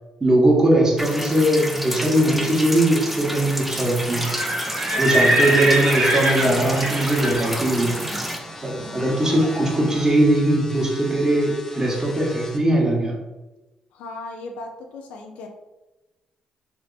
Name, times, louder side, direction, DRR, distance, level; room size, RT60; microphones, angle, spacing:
voice 1, 0.2-4.3 5.0-8.0 8.6-13.2, right 1 dB, 25° right, -1 dB, 1.3 m, -20 dB
sound 1, 1.0-8.4, equal, 5° right, 0.7 m, -30 dB
Livestock farm animals working animals, 4.1-9.9, right 1 dB, 70° right, 1.2 m, -24 dB
sound 2, 5.6-12.6, left 1 dB, 20° left, 0.9 m, -41 dB
voice 2, 13.9-15.5, left 3 dB, 85° left, 3 dB, 0.6 m, -37 dB
3.5 x 2.9 x 4.0 m, 1.0 s
supercardioid pair, 60°, 2 cm